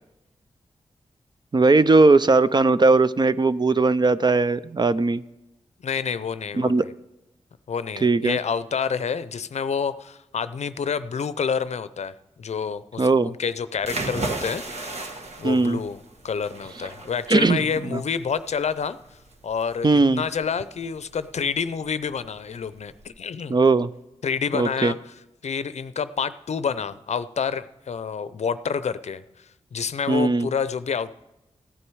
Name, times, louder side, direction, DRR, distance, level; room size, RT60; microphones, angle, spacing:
voice 1, 1.5-5.2 6.6-6.8 8.0-8.4 13.0-13.3 15.4-15.8 17.3-17.6 17.9-18.0 19.8-20.2 23.5-23.9 24.5-24.9 30.1-30.5, right 3 dB, 35° right, 15 dB, 0.5 m, -18 dB
voice 2, 5.8-6.9 7.7-12.1 12.4-15.1 15.4-19.0 19.4-23.6 24.2-25.0 25.4-29.2 29.7-31.2, left 6 dB, 65° left, 14 dB, 0.5 m, -28 dB
sound 1, 13.8-23.1, right 2 dB, 65° right, 1.5 m, -36 dB
15.0 x 9.8 x 4.7 m, 0.95 s
cardioid pair, 45°, 12 cm